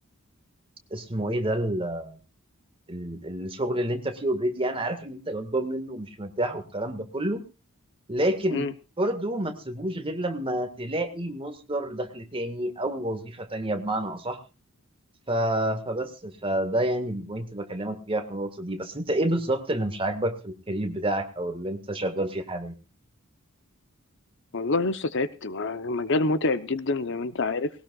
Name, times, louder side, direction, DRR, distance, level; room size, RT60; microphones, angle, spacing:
voice 1, 0.9-2.2 2.9-7.4 8.1-8.7 9.0-14.4 15.3-22.7, right 1 dB, 25° right, 7 dB, 1.8 m, -29 dB
voice 2, 24.5-27.7, left 3 dB, 60° left, 12 dB, 0.9 m, -27 dB
19.0 x 18.0 x 2.4 m, 0.30 s
head